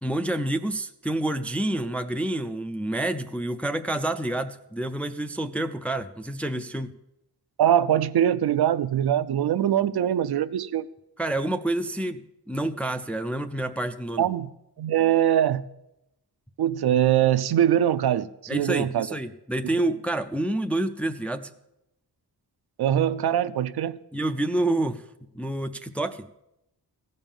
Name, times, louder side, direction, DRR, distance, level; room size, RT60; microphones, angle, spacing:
voice 1, 0.0-6.9 11.2-12.2 12.5-14.3 18.5-21.5 24.1-25.0 25.3-26.3, right 1 dB, 5° left, 0.3 m, -28 dB
voice 2, 7.6-10.9 14.2-14.5 14.8-15.7 16.6-19.1 22.8-24.0, right 10 dB, 70° right, 0.5 m, -22 dB
15.0 x 5.4 x 7.1 m
wide cardioid pair, 130°, 40 cm